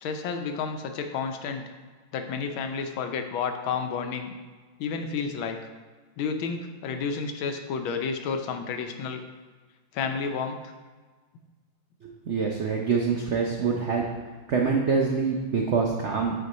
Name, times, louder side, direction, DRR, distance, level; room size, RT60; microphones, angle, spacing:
voice 1, 0.0-1.6 2.1-4.3 4.8-5.6 6.2-9.2 9.9-10.7, left 5 dB, 85° left, 6 dB, 1.5 m, -31 dB
voice 2, 12.0-14.0 14.5-16.3, right 5 dB, 75° right, 0 dB, 0.6 m, -25 dB
8.5 x 4.5 x 4.0 m, 1.4 s
omnidirectional pair, 2.1 m